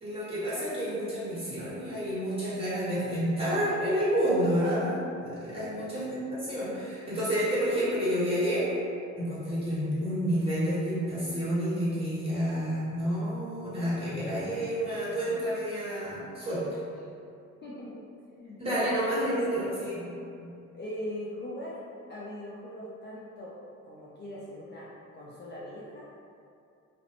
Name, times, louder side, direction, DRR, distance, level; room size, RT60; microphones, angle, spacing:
voice 1, 0.0-8.7 9.1-16.8 18.6-20.1 20.4-20.6, equal, 20° right, -11 dB, 1.2 m, -29 dB
voice 2, 5.6-6.0 17.6-18.0 18.4-19.8 20.7-23.5 23.8-26.1, left 1 dB, 35° left, -7 dB, 0.4 m, -41 dB
2.4 x 2.0 x 2.9 m, 2.5 s
cardioid pair, 90°, 30 cm